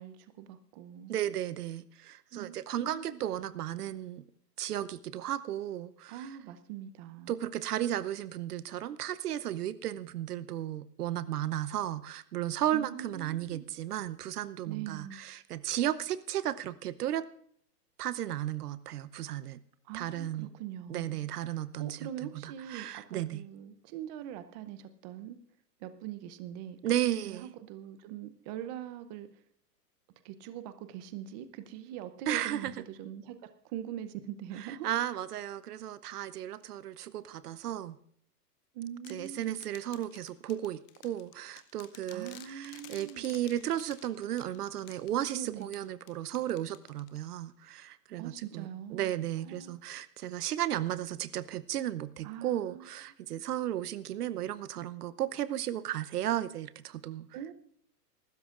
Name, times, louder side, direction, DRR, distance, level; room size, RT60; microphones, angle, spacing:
voice 1, 0.0-1.1 2.3-3.2 6.1-7.4 12.7-13.6 14.7-15.2 19.8-21.2 21.5-25.4 25.8-29.3 30.2-33.4 33.6-34.9 38.7-39.5 42.1-43.3 45.3-45.7 48.2-49.1 49.4-49.8 52.2-52.9 57.3-57.5, right 10 dB, 25° right, 11 dB, 0.7 m, -42 dB
voice 2, 1.1-4.2 4.6-6.3 7.3-17.3 18.0-19.6 19.9-20.5 20.9-22.1 22.4-23.4 26.8-27.5 32.3-32.7 34.6-38.0 39.1-57.3, right 12 dB, 70° right, 16 dB, 0.8 m, -34 dB
sound 1, 39.0-47.5, left 13 dB, 30° left, 0.7 m, -54 dB
23.5 x 13.0 x 2.5 m, 0.63 s
hypercardioid pair, 140°, 48 cm